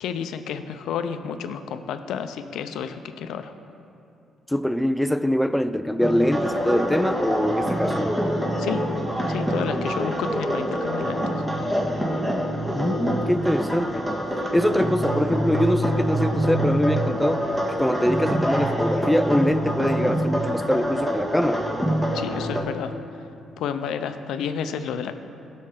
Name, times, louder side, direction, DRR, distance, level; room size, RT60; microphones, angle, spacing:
voice 1, 0.0-3.5 8.6-8.8 9.3-11.4 22.1-22.9 23.6-25.1, left 7 dB, 85° left, 9 dB, 0.6 m, -31 dB
voice 2, 4.5-8.2 12.7-14.1 14.5-21.6, equal, 5° left, 12 dB, 0.4 m, -23 dB
sound 1, 6.0-22.6, equal, 15° right, 1.6 m, -25 dB
17.5 x 6.3 x 3.8 m, 2.6 s
cardioid pair, 90°, 0 cm